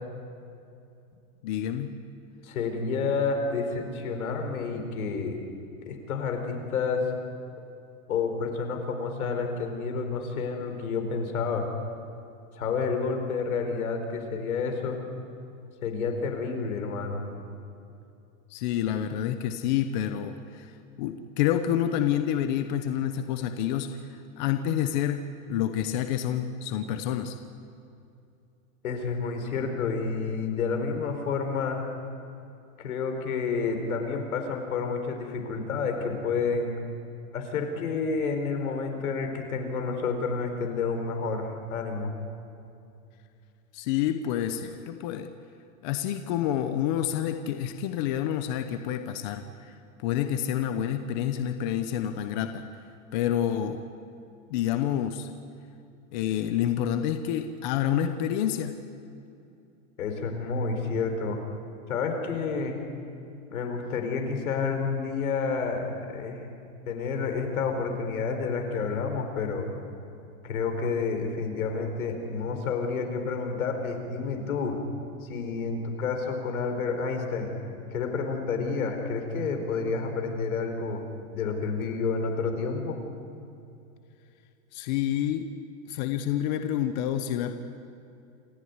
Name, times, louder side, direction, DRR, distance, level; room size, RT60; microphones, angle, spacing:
voice 1, 1.4-1.9 18.5-20.7 21.0-24.0 24.4-25.2 25.5-27.4 43.7-45.3 45.8-52.8 53.1-53.8 54.5-55.3 56.1-58.7 84.7-85.5 85.9-87.5, left 10 dB, 35° left, 8 dB, 1.0 m, -28 dB
voice 2, 2.4-5.4 5.8-7.0 8.1-11.7 12.5-15.0 15.8-17.3 28.8-31.9 32.8-36.7 37.3-42.1 60.0-61.4 61.9-62.8 63.5-66.4 66.9-69.7 70.4-74.8 75.2-77.5 77.9-81.0 81.3-83.0, left 4 dB, 85° left, 5 dB, 4.7 m, -29 dB
28.0 x 14.5 x 9.7 m, 2.6 s
supercardioid pair, 165°, 42 cm